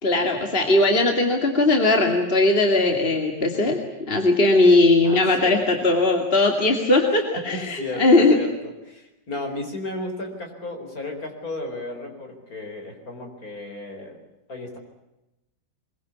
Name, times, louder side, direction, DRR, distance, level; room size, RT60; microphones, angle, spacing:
voice 1, 0.0-3.8 4.1-8.4, left 2 dB, 30° left, 3 dB, 2.6 m, -19 dB
voice 2, 5.0-5.9 7.5-14.2 14.5-14.8, left 2 dB, 55° left, 4 dB, 4.8 m, -34 dB
23.0 x 22.5 x 8.3 m, 0.94 s
omnidirectional pair, 1.9 m